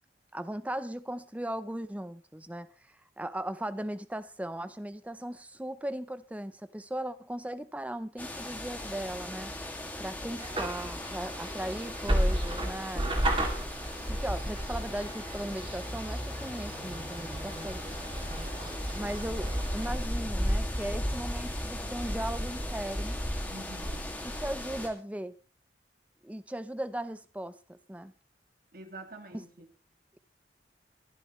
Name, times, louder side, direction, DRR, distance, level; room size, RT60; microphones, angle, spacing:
voice 1, 0.3-2.7 3.2-9.5 10.0-13.1 14.1-17.8 18.9-23.2 24.2-25.3 26.2-28.1 29.3-29.4, right 1 dB, 10° right, 0.6 m, -37 dB
sound 1, 8.2-24.9, equal, 10° left, 2.3 m, -36 dB
sound 2, 10.4-19.9, right 1 dB, 30° right, 2.6 m, -34 dB
voice 2, 23.5-24.1 28.7-29.7, right 2 dB, 55° right, 2.4 m, -46 dB
23.0 x 11.0 x 3.2 m
head